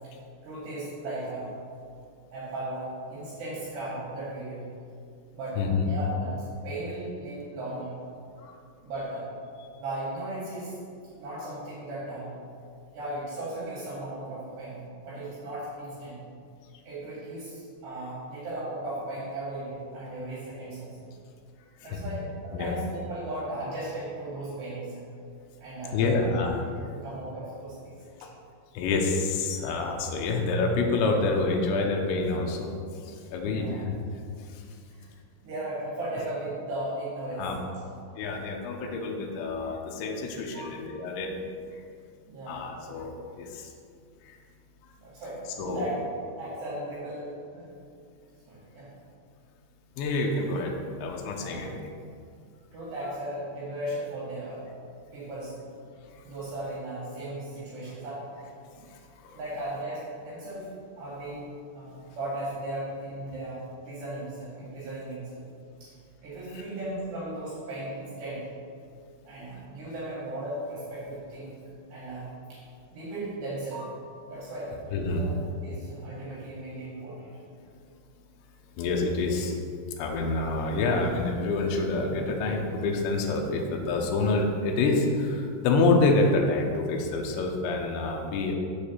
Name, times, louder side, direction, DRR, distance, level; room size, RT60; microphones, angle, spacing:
voice 1, 0.4-1.5 2.3-4.6 5.3-7.9 8.8-9.3 9.8-10.8 11.2-12.3 12.9-16.2 16.9-21.1 21.8-25.0 25.6-26.4 26.7-28.0 33.4-33.8 34.9-35.1 35.4-37.8 40.5-40.7 42.3-43.0 45.0-46.0 46.4-47.8 48.5-48.9 51.3-51.6 52.7-54.7 55.1-55.5 56.2-58.3 58.8-58.9 59.3-65.4 65.8-65.9 66.2-68.5 69.3-71.6 71.9-72.6 72.9-74.0 74.3-74.7 75.0-77.3, right 1 dB, 60° right, -8 dB, 3.7 m, -36 dB
voice 2, 5.6-5.9 8.4-8.5 21.9-22.0 22.5-22.7 25.9-26.9 28.7-32.7 33.1-34.0 34.5-34.6 37.4-37.6 38.2-41.3 42.5-43.7 44.2-44.4 45.6-45.9 50.0-50.7 51.0-51.9 59.2-59.4 66.5-66.6 74.9-75.3 78.8-79.5 80.0-88.5, left 3 dB, 80° left, 2 dB, 2.8 m, -27 dB
7.5 x 4.8 x 7.1 m, 2.3 s
omnidirectional pair, 5.9 m